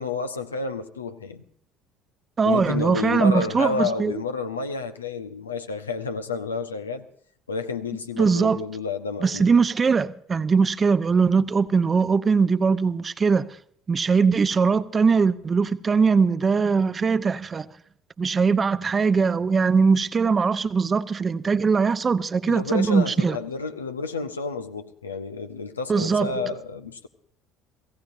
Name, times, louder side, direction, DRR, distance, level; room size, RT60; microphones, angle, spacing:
voice 1, 0.0-1.4 2.4-7.1 7.5-9.5 22.5-27.1, left 4 dB, 85° left, 1.0 m, -30 dB
voice 2, 2.4-4.2 8.2-8.6 9.2-13.5 13.9-17.7 18.2-23.4 25.9-26.4, right 5 dB, 30° right, 0.9 m, -21 dB
30.0 x 16.5 x 2.7 m
figure-of-eight pair, 60°, 0 cm